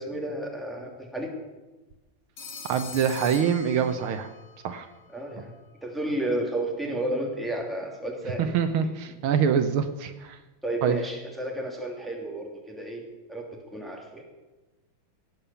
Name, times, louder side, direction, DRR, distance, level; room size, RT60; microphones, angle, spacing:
voice 1, 0.0-1.3 5.1-5.5 5.8-8.6 10.6-13.0 13.3-14.2, right 1 dB, ahead, -1 dB, 2.5 m, -32 dB
Telephone, 2.4-4.4, left 4 dB, 85° left, 2.7 m, -42 dB
voice 2, 2.7-4.3 4.6-4.9 8.4-10.4 10.8-11.0, right 7 dB, 75° right, 9 dB, 1.7 m, -25 dB
17.0 x 8.8 x 7.0 m, 1.1 s
omnidirectional pair, 2.3 m